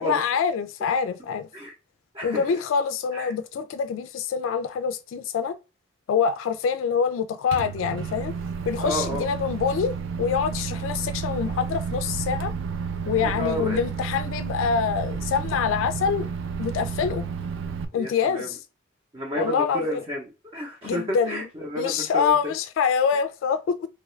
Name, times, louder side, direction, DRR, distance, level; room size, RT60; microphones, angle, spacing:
voice 1, 0.0-1.5 2.2-5.6 6.1-8.3 8.6-9.9 10.2-12.5 13.1-16.3 16.6-17.2 17.9-18.6 19.3-20.0 20.8-21.5 21.8-23.9, left 6 dB, 80° left, 0.3 m, -25 dB
voice 2, 2.1-2.6 3.1-3.3 8.8-9.3 13.2-13.8 17.9-18.5 19.1-22.5, equal, 30° right, 0.6 m, -31 dB
Microwave oven, 7.5-17.8, right 6 dB, 70° right, 0.4 m, -31 dB
3.0 x 2.3 x 3.1 m
head